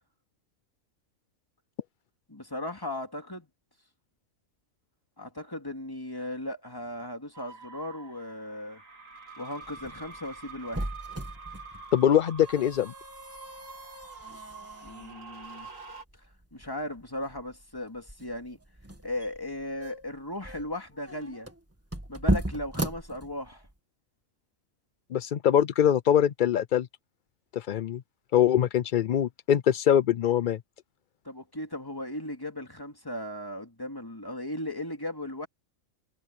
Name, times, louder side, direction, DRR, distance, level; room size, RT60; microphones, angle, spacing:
voice 1, 2.3-3.5 5.2-8.8 9.4-10.9 14.8-15.7 16.5-18.6 19.0-21.5 22.1-23.7 31.2-35.5, left 1 dB, 15° left, 2.6 m, -37 dB
sound 1, 7.3-16.0, right 4 dB, 75° right, 3.1 m, -46 dB
sound 2, 9.6-23.8, right 1 dB, 10° right, 1.6 m, -36 dB
voice 2, 11.9-12.9 25.1-26.9 27.5-28.0 28.3-30.6, left 10 dB, 65° left, 0.5 m, -23 dB
omnidirectional pair, 1.4 m